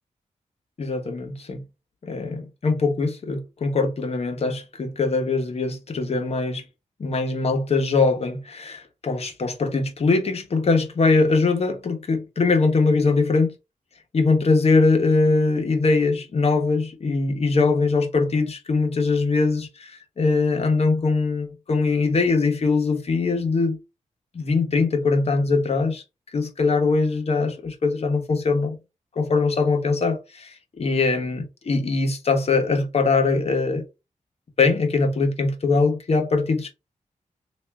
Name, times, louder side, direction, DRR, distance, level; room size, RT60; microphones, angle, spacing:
voice 1, 0.8-1.6 2.0-6.6 7.0-13.5 14.1-23.8 24.3-26.0 26.3-28.8 29.2-33.8 34.6-36.7, left 3 dB, 50° left, 0.9 m, -22 dB
3.5 x 2.5 x 3.3 m
wide cardioid pair, 110°, 13 cm